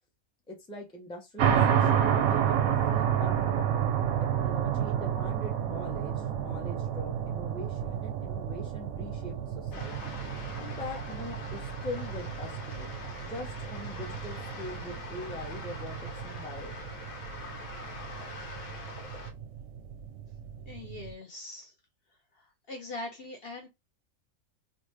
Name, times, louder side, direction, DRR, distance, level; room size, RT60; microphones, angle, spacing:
voice 1, 0.5-3.7 4.3-10.2 10.6-12.9 13.2-16.9, left 1 dB, 5° left, 0.4 m, -42 dB
sound 1, 1.4-21.1, right 9 dB, 90° right, 1.0 m, -31 dB
sound 2, 9.7-19.3, left 3 dB, 85° left, 1.2 m, -43 dB
voice 2, 20.7-21.7 22.7-23.7, left 2 dB, 55° left, 0.7 m, -41 dB
3.2 x 2.1 x 3.1 m
omnidirectional pair, 1.4 m